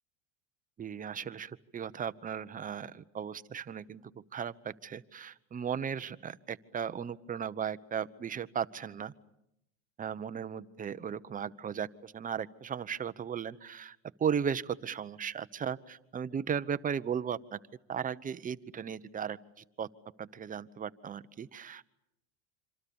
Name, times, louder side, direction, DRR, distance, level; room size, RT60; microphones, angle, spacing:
voice 1, 0.8-9.1 10.0-17.6 17.9-19.9 20.2-21.8, right 7 dB, 20° right, 13 dB, 0.9 m, -36 dB
27.0 x 26.0 x 7.1 m, 0.83 s
supercardioid pair, 115°, 37 cm